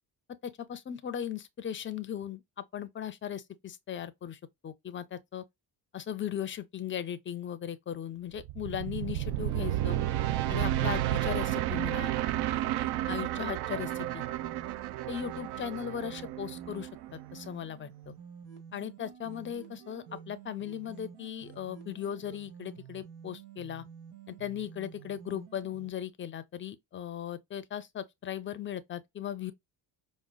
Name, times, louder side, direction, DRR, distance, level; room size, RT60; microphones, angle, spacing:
voice 1, 0.4-5.4 5.9-10.0 10.5-12.1 13.1-14.2 15.1-18.1 18.7-23.8 24.3-29.5, left 9 dB, 30° left, 0.5 m, -38 dB
sound 1, 8.4-17.5, right 14 dB, 60° right, 0.5 m, -32 dB
sound 2, 12.0-25.9, right 8 dB, 85° right, 1.4 m, -50 dB
5.0 x 2.1 x 2.2 m
cardioid pair, 110°, 45 cm